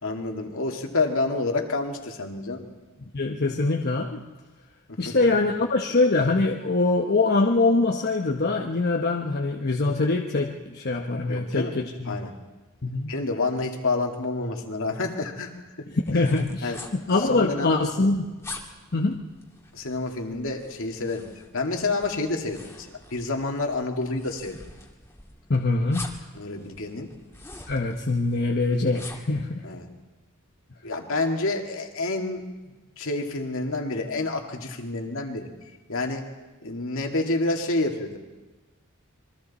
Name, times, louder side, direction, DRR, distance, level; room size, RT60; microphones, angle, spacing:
voice 1, 0.0-2.7 4.9-5.3 11.3-11.8 12.1-12.3 13.0-15.5 16.1-16.3 16.6-16.8 17.3-17.7 19.7-24.6 26.3-27.1 29.6-29.9 30.8-36.3 36.6-38.2, left 2 dB, 65° left, 3 dB, 2.3 m, -29 dB
voice 2, 3.0-4.3 5.0-12.2 12.8-13.1 15.9-18.3 18.9-19.2 25.5-26.1 27.7-29.6, left 3 dB, 50° left, 1 dB, 1.1 m, -24 dB
sound 1, 16.1-29.4, left 2 dB, 15° left, 2.1 m, -45 dB
27.0 x 22.5 x 4.2 m, 1.2 s
head